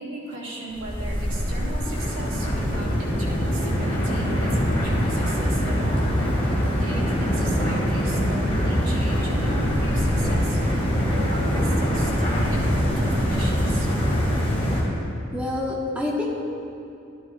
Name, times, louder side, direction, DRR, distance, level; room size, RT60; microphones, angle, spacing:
voice 1, 0.0-13.9, right 1 dB, 90° right, -4 dB, 2.7 m, -37 dB
sound 1, 0.7-14.8, equal, 30° left, 2.4 m, -23 dB
voice 2, 15.3-16.3, left 2 dB, 5° right, -4 dB, 1.1 m, -27 dB
12.5 x 12.0 x 2.5 m, 2.6 s
head